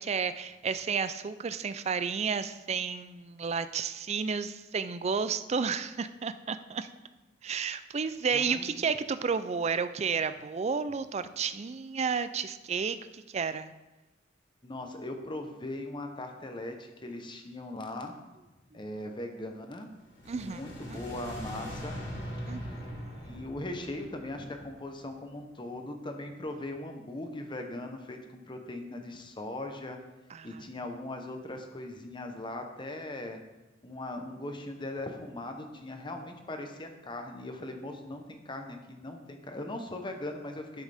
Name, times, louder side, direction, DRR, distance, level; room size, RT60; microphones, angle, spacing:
voice 1, 0.0-6.9 7.4-13.7 18.7-18.8 20.3-20.6 20.9-21.0 22.5-23.4 30.3-30.6, right 5 dB, 35° right, 12 dB, 0.4 m, -32 dB
voice 2, 8.3-8.7 14.6-18.1 18.7-19.9 20.3-22.0 22.5-22.7 23.2-30.0 30.4-33.4 33.8-40.8, left 1 dB, 25° left, 5 dB, 0.9 m, -39 dB
sound 1, 20.0-25.2, equal, 75° left, 2.5 m, -41 dB
11.5 x 6.4 x 3.5 m, 1.1 s
head